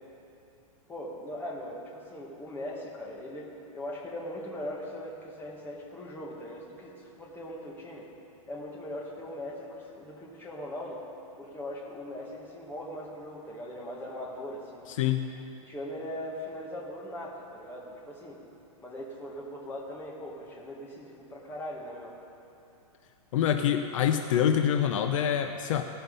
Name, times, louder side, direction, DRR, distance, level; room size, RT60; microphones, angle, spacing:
voice 1, 0.9-8.1 8.5-11.0 11.4-14.8 15.6-18.4 18.8-22.2, left 1 dB, 10° left, -3 dB, 1.7 m, -40 dB
voice 2, 15.0-15.3 23.3-25.8, left 9 dB, 65° left, 6 dB, 0.6 m, -25 dB
17.5 x 5.9 x 5.3 m, 2.8 s
hypercardioid pair, 145°, 18 cm